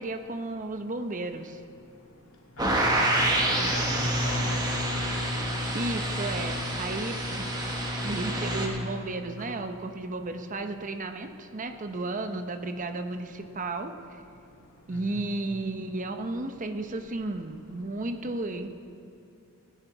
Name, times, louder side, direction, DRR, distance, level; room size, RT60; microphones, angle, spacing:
voice 1, 0.0-1.6 5.4-7.5 8.0-13.9 14.9-18.7, right 2 dB, 40° right, 7 dB, 0.8 m, -33 dB
voice 2, 2.6-4.6 14.9-15.0, left 1 dB, 80° left, -2 dB, 2.5 m, -37 dB
sound 1, 2.6-8.7, right 1 dB, 20° right, 1.4 m, -27 dB
17.0 x 10.0 x 4.6 m, 2.4 s
head